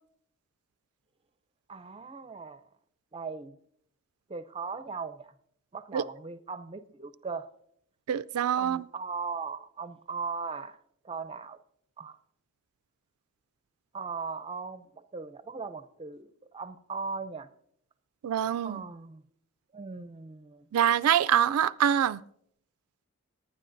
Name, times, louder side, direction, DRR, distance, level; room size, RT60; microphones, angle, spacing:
voice 1, 1.7-2.6 3.1-3.6 4.3-5.3 5.7-7.5 8.6-10.8 11.0-11.6 12.0-12.2 13.9-17.5 18.6-19.2 19.7-20.6, right 5 dB, 25° right, 0.5 m, -38 dB
voice 2, 8.1-8.8 18.2-18.8 20.7-22.2, right 9 dB, 85° right, 0.3 m, -25 dB
18.5 x 9.9 x 2.6 m
head